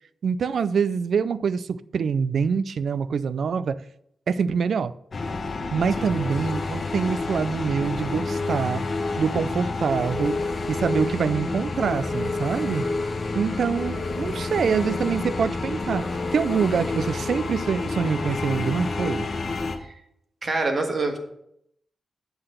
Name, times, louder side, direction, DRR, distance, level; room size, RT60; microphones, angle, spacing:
voice 1, 0.2-3.8 4.3-4.9 5.7-8.9 9.2-10.4 10.7-12.9 13.3-16.0 16.3-19.3, right 6 dB, 65° right, 0.4 m, -25 dB
sound 1, 5.1-19.8, left 3 dB, 40° left, 1.1 m, -29 dB
voice 2, 20.4-21.2, right 3 dB, 35° right, 1.5 m, -26 dB
7.9 x 5.8 x 6.6 m
wide cardioid pair, 150°, 0 cm